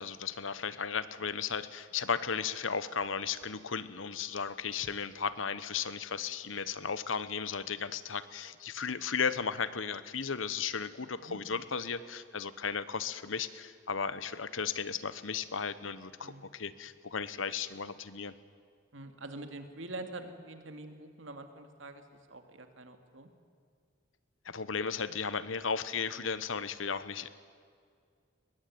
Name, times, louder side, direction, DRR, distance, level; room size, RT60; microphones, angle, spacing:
voice 1, 0.0-18.3 24.4-27.3, left 6 dB, 90° left, 15 dB, 1.1 m, -35 dB
voice 2, 18.9-22.0 22.3-23.3, right 2 dB, 75° right, 7 dB, 2.4 m, -45 dB
22.0 x 21.0 x 9.5 m, 2.1 s
head